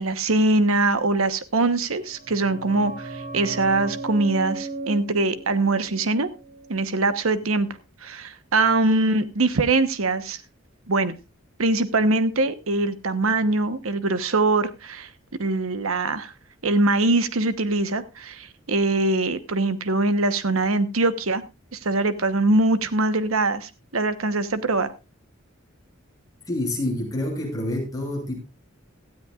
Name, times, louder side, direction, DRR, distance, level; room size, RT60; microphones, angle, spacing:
voice 1, 0.0-6.3 6.7-7.7 8.0-10.4 10.9-11.1 11.6-15.1 15.4-16.3 16.6-21.4 21.7-24.9, right 2 dB, 90° right, 11 dB, 1.1 m, -22 dB
sound 1, 1.9-7.3 7.5-7.6, right 2 dB, 40° right, 3.9 m, -37 dB
voice 2, 26.5-28.3, left 1 dB, 20° left, -1 dB, 6.3 m, -27 dB
17.5 x 13.0 x 2.4 m, 0.26 s
head